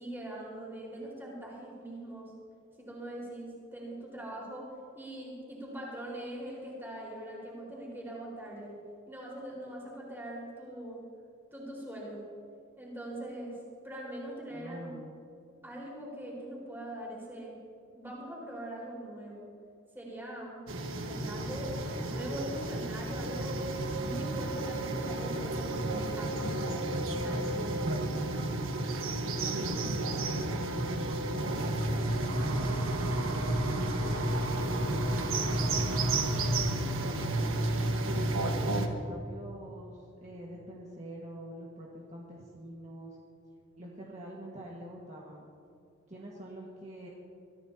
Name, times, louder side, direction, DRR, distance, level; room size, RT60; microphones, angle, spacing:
voice 1, 0.0-2.3 2.8-4.7 4.9-8.7 9.1-11.0 11.5-12.2 12.8-13.5 13.8-14.9 15.6-17.6 17.9-19.4 19.9-23.7 24.0-26.4 27.0-27.9, right 1 dB, 10° right, -4 dB, 4.6 m, -42 dB
voice 2, 14.5-15.1 29.2-31.9 32.4-34.2 34.6-37.9 38.6-43.2 43.8-45.5 46.1-47.1, right 1 dB, 35° right, -4 dB, 1.7 m, -45 dB
sound 1, 20.7-38.9, right 1 dB, 85° right, 1.4 m, -31 dB
24.0 x 15.0 x 2.9 m, 2.5 s
head